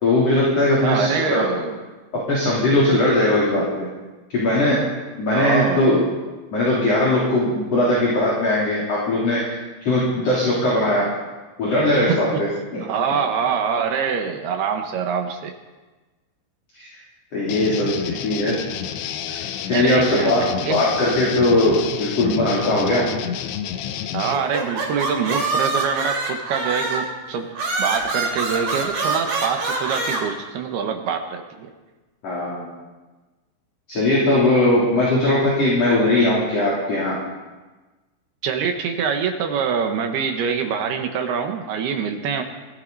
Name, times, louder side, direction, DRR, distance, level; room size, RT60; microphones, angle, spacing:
voice 1, 0.0-1.5 2.3-3.6 4.3-4.8 5.2-6.0 6.5-11.1 11.6-12.3 12.7-12.8 16.7-16.9 17.3-18.6 19.3-23.1 32.2-32.7 33.9-37.2, left 1 dB, 35° left, -6 dB, 3.9 m, -19 dB
voice 2, 0.8-1.8 5.3-5.9 12.1-12.4 12.8-15.5 19.7-20.8 24.1-27.5 27.8-31.7 38.4-42.4, right 6 dB, 70° right, 4 dB, 2.6 m, -24 dB
sound 1, 17.5-24.3, left 9 dB, 80° left, 2.4 m, -30 dB
sound 2, 24.3-27.1 27.6-30.2, right 3 dB, 50° right, 4.8 m, -25 dB
22.5 x 15.0 x 4.1 m, 1.2 s
omnidirectional pair, 5.8 m